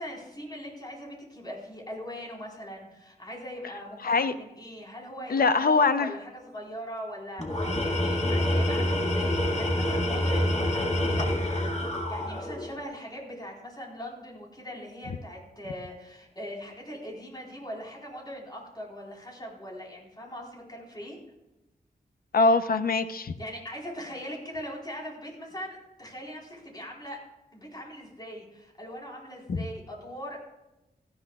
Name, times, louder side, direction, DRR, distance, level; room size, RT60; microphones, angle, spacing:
voice 1, 0.0-11.4 11.7-21.2 23.4-27.2 27.5-30.4, equal, 25° left, -2 dB, 4.1 m, -41 dB
voice 2, 4.0-4.3 5.3-6.1 22.3-23.3, left 4 dB, 60° left, 10 dB, 0.7 m, -22 dB
Tools, 7.4-12.8, left 1 dB, 40° left, 1.9 m, -27 dB
18.0 x 13.5 x 2.4 m, 0.98 s
wide cardioid pair, 150°, 17 cm